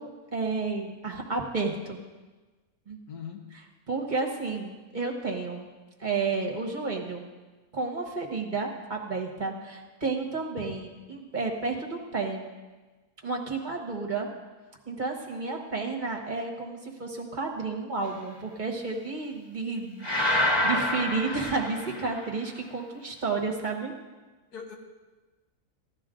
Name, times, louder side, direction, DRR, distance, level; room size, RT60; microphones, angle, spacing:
voice 1, 0.0-2.0 2.9-3.0 3.9-5.7 6.0-7.3 7.7-12.5 13.2-14.3 14.9-23.9, right 4 dB, 35° right, 1 dB, 1.4 m, -31 dB
voice 2, 3.1-3.5 24.5-24.8, left 7 dB, 85° left, 2 dB, 1.9 m, -40 dB
sound 1, 20.0-22.3, left 1 dB, 20° left, 1.3 m, -27 dB
15.5 x 11.5 x 3.8 m, 1.3 s
omnidirectional pair, 1.6 m